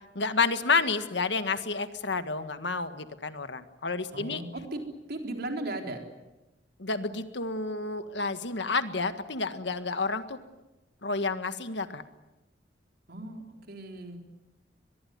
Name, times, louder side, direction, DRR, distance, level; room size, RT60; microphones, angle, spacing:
voice 1, 0.1-4.4 6.8-10.4 11.0-12.0, left 4 dB, 65° left, 10 dB, 1.7 m, -30 dB
voice 2, 4.1-4.8 5.1-6.0 13.1-14.2, right 2 dB, 55° right, 4 dB, 3.9 m, -36 dB
24.0 x 21.5 x 9.5 m, 1.1 s
head